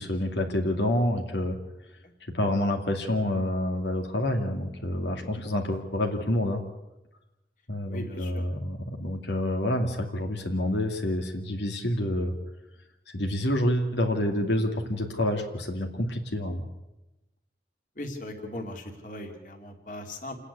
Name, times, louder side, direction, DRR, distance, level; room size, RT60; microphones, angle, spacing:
voice 1, 0.0-1.6 2.3-6.6 7.7-12.3 13.1-16.7, left 1 dB, 85° left, 3 dB, 2.5 m, -28 dB
voice 2, 7.9-8.4 18.0-20.4, left 1 dB, 45° left, 3 dB, 2.4 m, -38 dB
28.5 x 9.8 x 9.7 m, 0.97 s
head